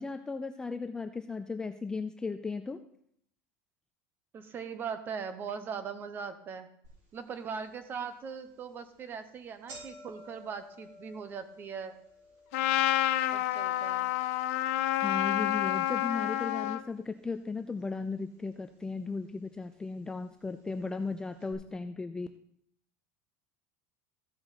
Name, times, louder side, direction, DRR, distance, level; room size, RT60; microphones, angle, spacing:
voice 1, 0.0-2.8 15.0-22.3, left 4 dB, 10° left, 8 dB, 0.4 m, -36 dB
voice 2, 4.3-6.7 7.1-12.0 13.3-14.1, right 6 dB, 25° right, 11 dB, 0.9 m, -40 dB
sound 1, 6.8-6.9 7.5-7.6 8.4-8.6 8.9-9.0 9.3-17.5 17.8-18.5 19.3-19.4 20.4-20.5 20.7-20.8 21.4-21.5, equal, 80° right, 4.4 m, -54 dB
Trumpet, 12.5-16.8, left 14 dB, 80° left, 0.7 m, -29 dB
14.5 x 6.7 x 4.1 m, 0.69 s
cardioid pair, 155°, 7 cm